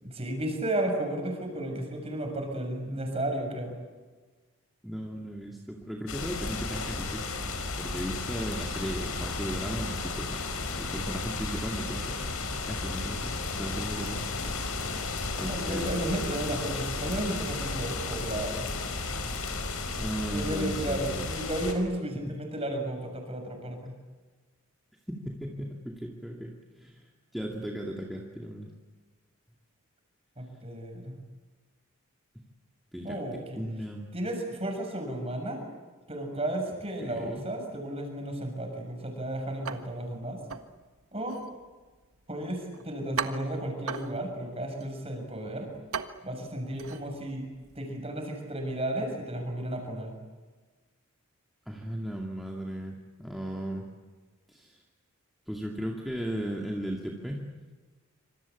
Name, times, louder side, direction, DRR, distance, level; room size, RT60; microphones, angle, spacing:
voice 1, 0.0-3.8 15.4-19.1 20.3-23.9 30.4-31.2 33.0-33.6 34.1-35.6 36.1-40.4 41.1-41.4 42.3-45.7 46.2-47.5 47.8-50.1, right 1 dB, 25° right, 3 dB, 6.9 m, -33 dB
voice 2, 4.8-10.4 10.7-12.2 12.7-14.3 15.4-16.2 20.0-21.4 22.1-22.4 25.1-27.0 27.3-28.7 32.9-33.2 33.5-34.1 37.0-37.4 51.7-53.9 54.5-54.8 55.5-57.4, equal, ahead, -1 dB, 2.3 m, -36 dB
sound 1, 6.1-21.7, left 3 dB, 75° left, 4.8 m, -33 dB
sound 2, 39.6-47.9, right 6 dB, 80° right, 1.5 m, -40 dB
27.0 x 26.0 x 8.5 m, 1.3 s
head